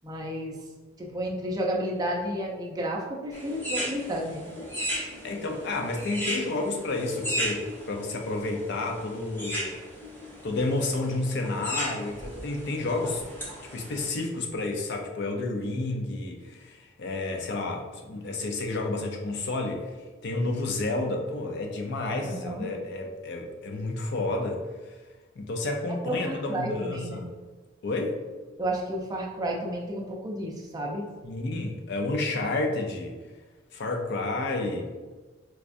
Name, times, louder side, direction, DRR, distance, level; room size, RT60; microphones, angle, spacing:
voice 1, 0.0-0.5 1.0-4.5 22.2-22.7 26.0-27.2 28.6-31.1, right 1 dB, 20° right, -2 dB, 0.5 m, -31 dB
sound 1, 3.3-14.1, equal, 10° left, 1.0 m, -36 dB
voice 2, 5.2-9.8 10.4-13.2 13.7-19.9 20.2-24.6 24.9-25.0 25.4-27.3 27.8-28.2 31.2-33.2 33.7-34.9, left 2 dB, 60° left, 2 dB, 0.5 m, -30 dB
4.6 x 2.2 x 2.5 m, 1.3 s
head